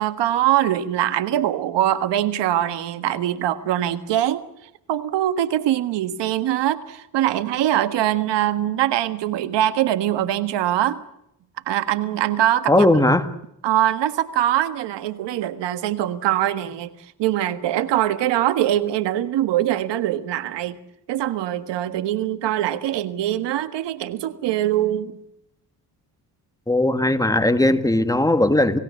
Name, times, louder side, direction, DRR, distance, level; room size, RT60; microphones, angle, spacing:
voice 1, 0.0-4.4 4.9-11.0 11.7-12.9 13.6-16.9 17.2-20.8 21.1-25.1, right 12 dB, 85° right, 1.6 m, -22 dB
voice 2, 12.7-13.3 26.7-28.8, left 1 dB, 10° left, 1.9 m, -18 dB
29.0 x 16.5 x 8.3 m
cardioid pair, 90°, 41 cm